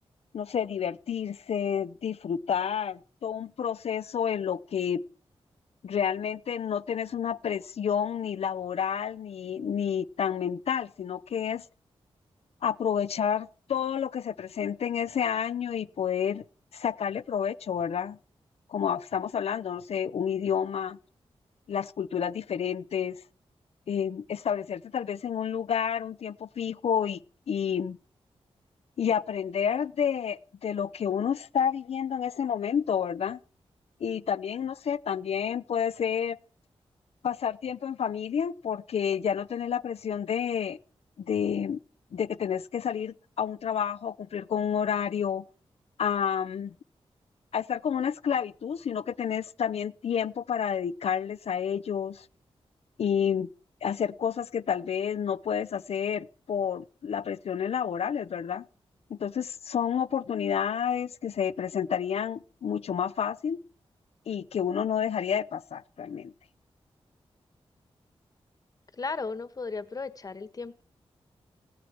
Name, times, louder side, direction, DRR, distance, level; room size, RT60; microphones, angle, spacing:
voice 1, 0.3-5.0 5.8-11.6 12.6-16.4 16.7-18.2 18.7-21.0 21.7-23.2 23.9-27.2 27.5-28.0 29.0-33.4 34.0-36.4 37.2-40.8 41.2-41.8 42.1-45.4 46.0-46.7 47.5-52.3 53.0-53.5 53.8-58.6 59.1-63.6 64.3-66.3, left 8 dB, 75° left, 0.7 m, -30 dB
voice 2, 69.0-70.8, left 4 dB, 35° left, 1.4 m, -35 dB
19.0 x 16.5 x 4.5 m
wide cardioid pair, 160°, 11 cm